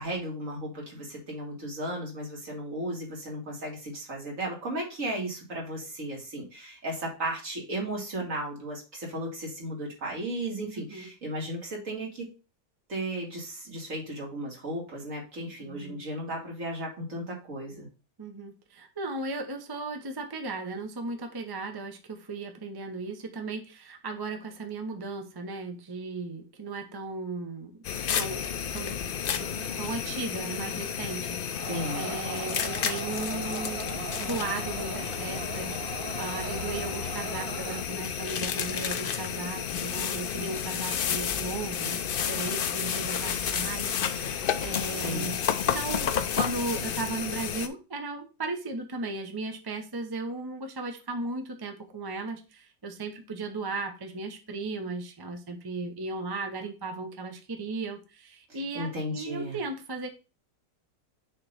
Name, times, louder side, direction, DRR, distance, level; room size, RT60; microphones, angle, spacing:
voice 1, 0.0-12.3 12.9-17.9 31.7-32.0 44.9-45.3 58.7-59.6, right 1 dB, 55° right, -1 dB, 2.4 m, -35 dB
voice 2, 15.6-16.0 18.2-27.8 28.1-29.0 29.8-60.1, right 3 dB, 25° right, 5 dB, 0.5 m, -36 dB
sound 1, 27.8-47.7, left 8 dB, 70° left, 0.5 m, -31 dB
sound 2, 29.3-37.8, right 9 dB, 80° right, 1.1 m, -41 dB
6.6 x 3.0 x 5.4 m, 0.32 s
omnidirectional pair, 1.6 m